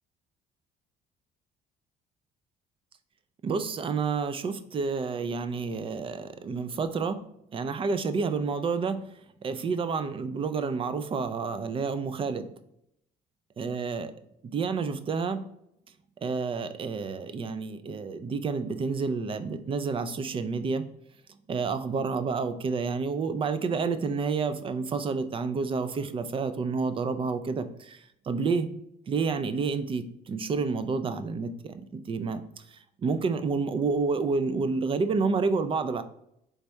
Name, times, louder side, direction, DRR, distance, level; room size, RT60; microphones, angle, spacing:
voice 1, 3.4-7.3 7.5-9.0 9.4-12.5 13.6-14.1 14.4-15.4 16.2-20.8 21.5-28.0 28.3-28.7 29.1-32.4 33.0-36.0, right 4 dB, 30° right, 11 dB, 0.4 m, -29 dB
4.0 x 3.5 x 3.2 m, 0.76 s
cardioid pair, 110°, 17 cm